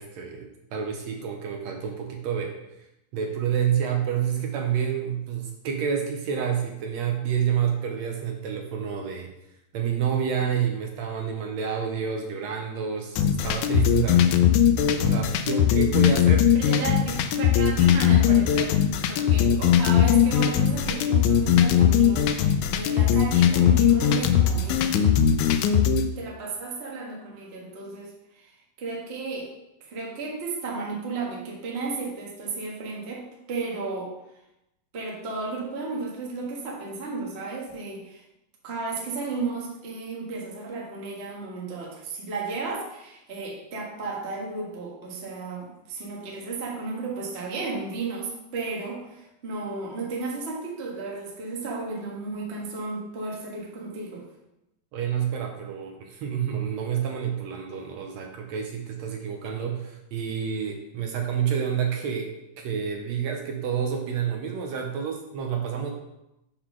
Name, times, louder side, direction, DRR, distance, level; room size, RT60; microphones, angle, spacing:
voice 1, 0.0-2.9 3.1-9.3 9.7-14.2 15.0-16.5 54.9-65.9, right 8 dB, 75° right, 2 dB, 1.8 m, -29 dB
sound 1, 13.2-26.0, left 9 dB, 85° left, 2.0 m, -20 dB
voice 2, 16.5-25.4 26.2-29.5 29.8-34.1 34.9-38.2 38.6-54.2, right 3 dB, 35° right, -2 dB, 1.0 m, -34 dB
6.6 x 3.8 x 5.9 m, 0.89 s
omnidirectional pair, 3.3 m